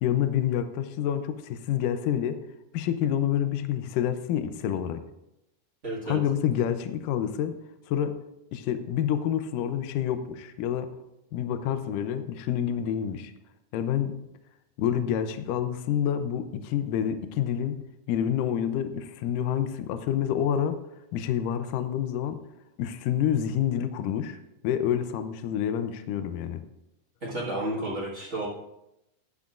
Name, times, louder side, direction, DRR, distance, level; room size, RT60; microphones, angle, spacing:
voice 1, 0.0-2.4 2.7-5.0 6.1-7.6 7.9-8.2 8.5-10.9 11.3-13.3 13.7-14.2 14.8-20.8 21.1-22.4 22.8-24.4 24.6-26.6, left 9 dB, 90° left, 9 dB, 1.9 m, -28 dB
voice 2, 5.8-6.2 27.2-28.5, right 1 dB, 65° right, -7 dB, 0.7 m, -31 dB
13.5 x 9.8 x 2.5 m, 0.87 s
omnidirectional pair, 4.7 m